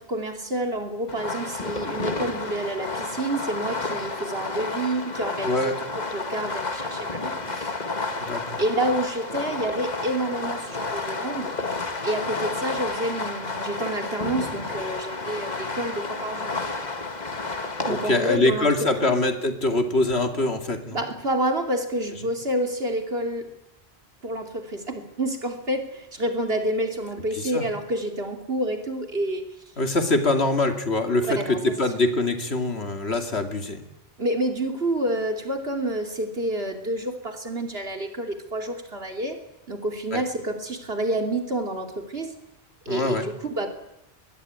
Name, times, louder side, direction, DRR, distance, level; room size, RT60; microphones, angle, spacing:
voice 1, 0.0-7.8 8.6-11.5 12.0-16.5 17.9-18.7 19.0-19.2 20.9-23.5 24.2-29.4 31.2-31.7 34.2-39.4 39.7-42.3 42.8-43.7, right 1 dB, 70° right, 5 dB, 3.2 m, -28 dB
Fireworks, 1.1-18.4, left 3 dB, 40° left, 1.8 m, -31 dB
voice 2, 5.4-5.8 8.2-8.6 17.9-21.0 27.4-27.6 29.8-33.8 40.1-40.2 42.9-43.3, left 2 dB, 80° left, 6 dB, 2.8 m, -24 dB
22.5 x 20.5 x 9.6 m, 0.89 s
omnidirectional pair, 1.1 m